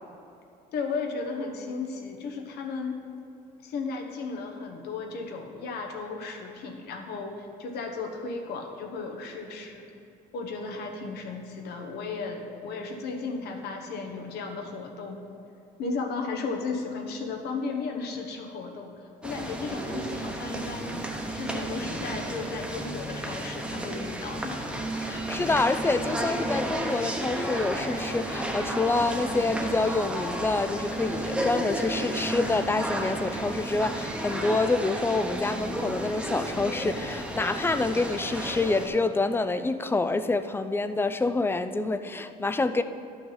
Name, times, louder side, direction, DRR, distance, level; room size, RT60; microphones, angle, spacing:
voice 1, 0.7-3.0 3.6-9.9 10.3-15.2 15.8-21.0 21.3-24.6, left 4 dB, 75° left, 3 dB, 1.1 m, -35 dB
sound 1, 19.2-38.9, right 1 dB, 5° right, 0.9 m, -32 dB
voice 2, 25.0-42.8, left 3 dB, 15° left, 11 dB, 0.4 m, -27 dB
11.0 x 6.0 x 4.0 m, 2.7 s
cardioid pair, 110°, 17 cm